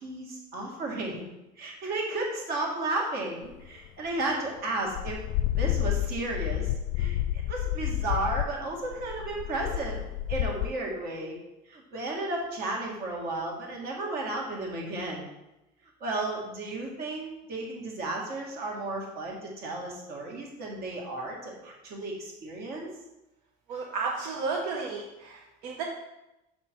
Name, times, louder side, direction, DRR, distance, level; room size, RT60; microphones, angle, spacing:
voice 1, 0.0-1.3 1.6-5.2 5.5-6.7 7.0-7.2 7.5-10.0 10.3-11.4 11.7-15.3 16.0-22.9, right 2 dB, 50° right, -1 dB, 2.2 m, -33 dB
sound 1, 3.4-3.9 4.6-4.7 4.9-10.7, left 13 dB, 80° left, 0.4 m, -30 dB
voice 2, 23.7-25.8, right 4 dB, 80° right, -1 dB, 1.1 m, -33 dB
6.7 x 5.6 x 4.5 m, 0.94 s
cardioid pair, 145°, 20 cm